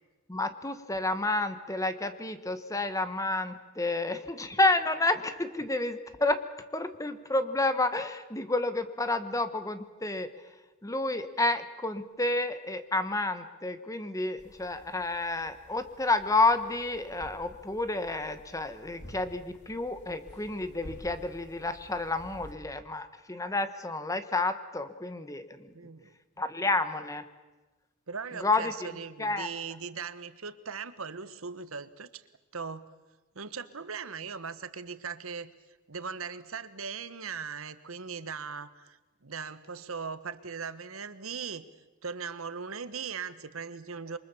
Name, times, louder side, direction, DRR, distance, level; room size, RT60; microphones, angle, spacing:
voice 1, 0.3-6.4 6.7-10.3 10.8-25.7 26.4-27.2 28.4-28.7 29.2-29.5, left 2 dB, 15° left, 10 dB, 1.2 m, -30 dB
sound 1, 14.4-22.5, equal, 55° left, 3.3 m, -51 dB
voice 2, 25.7-26.1 28.1-32.2 32.5-32.9 33.3-35.5 35.9-41.7 42.0-44.2, right 5 dB, 90° right, 13 dB, 1.3 m, -39 dB
28.0 x 23.5 x 7.1 m, 1.2 s
head